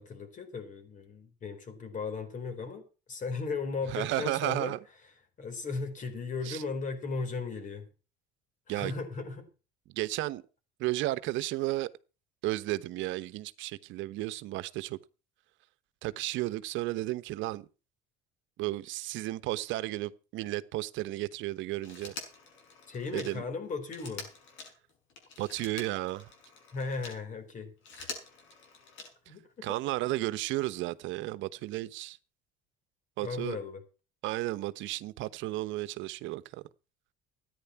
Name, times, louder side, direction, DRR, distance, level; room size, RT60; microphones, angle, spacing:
voice 1, 0.0-4.7 5.4-7.9 8.7-9.5 22.9-24.3 26.7-27.7 29.3-29.8 33.2-33.8, left 4 dB, 40° left, 4.2 m, -36 dB
voice 2, 3.9-4.8 6.4-6.6 8.7-8.9 9.9-10.4 10.8-11.9 12.4-15.0 16.0-17.7 18.6-22.1 23.1-23.4 25.4-26.3 29.6-32.2 33.2-33.6 34.2-36.6, right 17 dB, 65° right, 1.1 m, -33 dB
Telephone, 21.8-27.2 27.7-29.4 30.7-30.8, left 4 dB, 65° left, 6.5 m, -46 dB
14.0 x 9.9 x 5.8 m
cardioid pair, 125°, 21 cm